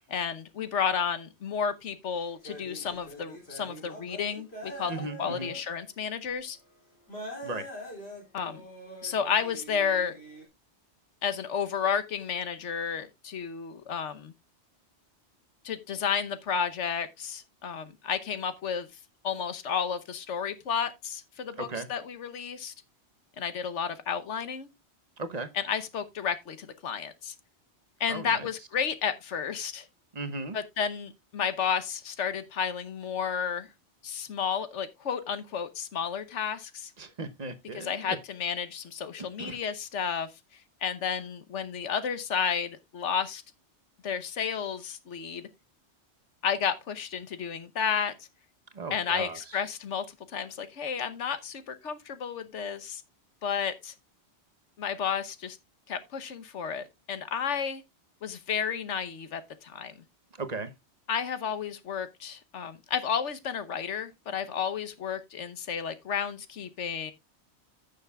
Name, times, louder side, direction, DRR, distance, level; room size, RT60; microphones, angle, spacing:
voice 1, 0.1-6.6 8.3-8.6 9.0-10.1 11.2-14.3 15.6-18.9 19.2-22.7 23.4-24.7 25.5-27.3 28.0-29.9 30.5-33.7 34.0-36.9 37.7-40.3 40.8-43.4 44.0-45.5 46.4-48.3 48.9-53.0 53.4-53.9 54.8-55.6 55.9-57.8 58.2-59.9 61.1-67.1, left 7 dB, 85° left, 1.3 m, -32 dB
sound 1, 2.2-5.8 6.2-6.3 7.1-10.4, equal, 60° left, 3.3 m, -44 dB
voice 2, 4.9-5.5 7.4-7.7 21.6-21.9 25.2-25.5 28.1-28.5 30.1-30.6 37.0-38.2 39.4-39.6 48.7-49.4 60.4-60.7, right 3 dB, 40° right, 1.0 m, -36 dB
15.0 x 6.6 x 2.3 m
omnidirectional pair, 1.2 m